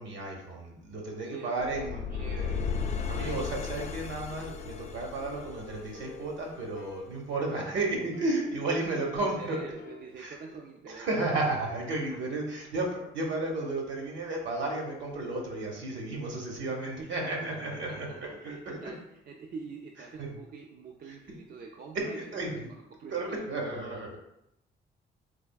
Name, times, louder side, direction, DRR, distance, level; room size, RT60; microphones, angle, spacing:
voice 1, 0.0-2.0 3.1-9.6 10.2-10.3 10.9-18.9 20.2-20.4 21.9-22.7 23.1-24.2, right 2 dB, 70° right, 0 dB, 0.9 m, -33 dB
voice 2, 1.2-2.7 7.7-7.8 9.1-11.1 12.1-12.2 16.3-17.2 17.5-17.6 17.9-23.4, right 5 dB, 50° right, 1 dB, 0.4 m, -46 dB
sound 1, 1.3-10.0, left 4 dB, 75° left, 0.6 m, -50 dB
sound 2, 1.7-6.7, left 6 dB, 35° left, 0.3 m, -35 dB
3.3 x 3.3 x 2.3 m, 0.81 s
cardioid pair, 90°, 20 cm